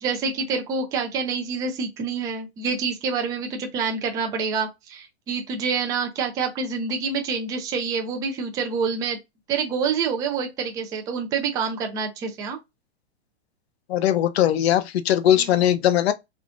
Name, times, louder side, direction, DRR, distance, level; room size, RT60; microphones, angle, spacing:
voice 1, 0.0-9.2 9.5-12.6 15.3-15.5, right 5 dB, 10° right, 0.4 m, -27 dB
voice 2, 13.9-16.1, left 11 dB, 70° left, 0.6 m, -20 dB
3.5 x 2.4 x 2.4 m
hypercardioid pair, 135°, 33 cm